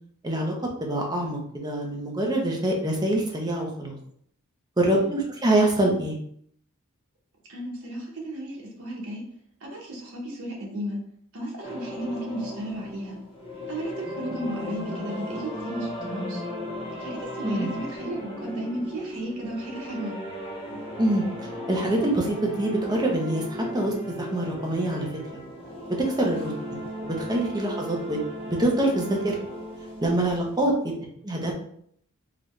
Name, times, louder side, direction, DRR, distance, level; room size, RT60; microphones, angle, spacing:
voice 1, 0.2-0.5 0.8-4.0 4.8-6.2 17.4-17.7 21.0-25.1 26.2-26.5 27.0-29.4 30.0-30.9 31.2-31.5, right 1 dB, 20° right, 0 dB, 0.6 m, -25 dB
voice 2, 7.5-9.3 9.6-11.0 11.3-13.2 13.7-16.4 17.0-20.2 26.3-26.6, right 1 dB, 70° right, -3 dB, 1.0 m, -34 dB
sound 1, 11.6-30.6, left 1 dB, 25° left, 0.7 m, -36 dB
3.9 x 2.2 x 3.1 m, 0.67 s
head